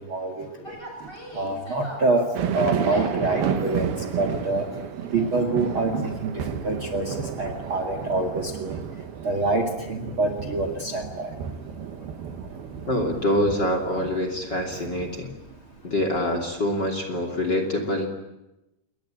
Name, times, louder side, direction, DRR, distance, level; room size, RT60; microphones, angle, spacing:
voice 1, 0.1-0.7 1.3-2.3 2.5-3.9 4.2-4.7 5.1-6.3 6.6-8.7 9.2-11.3, right 2 dB, 40° right, 7 dB, 2.4 m, -26 dB
sound 1, 0.6-16.9, equal, 10° left, 7.6 m, -47 dB
sound 2, 2.4-15.1, right 8 dB, 70° right, 3.2 m, -32 dB
voice 2, 12.9-15.3 15.8-18.1, left 1 dB, 30° left, 6 dB, 2.9 m, -25 dB
28.5 x 22.0 x 9.0 m, 0.96 s
omnidirectional pair, 4.8 m